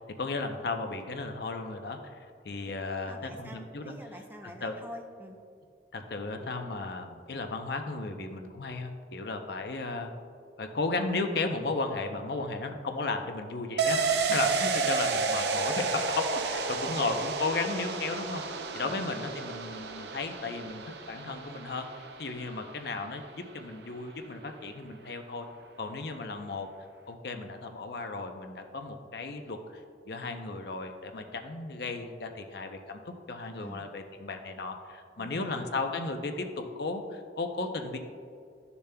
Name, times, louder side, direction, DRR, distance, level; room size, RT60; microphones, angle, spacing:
voice 1, 0.2-2.2 2.4-3.9 4.6-4.8 5.9-10.1 10.6-25.5 25.8-26.7 27.1-29.6 30.1-38.0, left 3 dB, 60° left, 5 dB, 0.6 m, -35 dB
voice 2, 3.0-5.4 16.8-17.2 18.8-19.1 33.6-33.9 35.2-35.7, equal, 10° right, 3 dB, 0.5 m, -46 dB
sound 1, 13.8-23.2 23.5-23.6, right 4 dB, 65° right, 0.6 m, -31 dB
12.0 x 6.8 x 2.2 m, 2.3 s
head